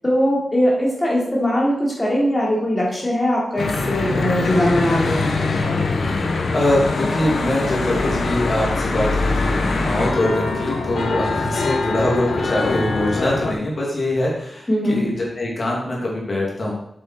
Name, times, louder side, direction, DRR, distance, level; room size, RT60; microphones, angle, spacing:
voice 1, 0.0-5.3 14.7-15.0, equal, 20° left, -5 dB, 3.4 m, -20 dB
Church bell / Traffic noise roadway noise, 3.6-13.5, left 3 dB, 65° left, 1.3 m, -23 dB
voice 2, 6.0-16.7, left 1 dB, 40° left, -3 dB, 3.0 m, -23 dB
8.2 x 7.9 x 4.8 m, 0.75 s
wide cardioid pair, 170°, 0 cm